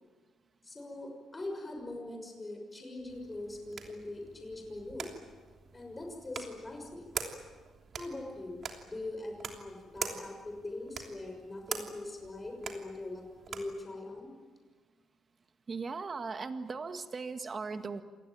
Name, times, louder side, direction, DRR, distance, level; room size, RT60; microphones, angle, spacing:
voice 1, 0.6-5.1 5.7-7.1 8.0-14.3, left 2 dB, 20° left, 3 dB, 6.2 m, -42 dB
sound 1, 3.1-13.8, right 6 dB, 55° right, 3.1 m, -44 dB
voice 2, 15.7-18.0, right 4 dB, 35° right, 8 dB, 1.9 m, -38 dB
28.0 x 19.0 x 9.1 m, 1.4 s
cardioid pair, 90°, 0 cm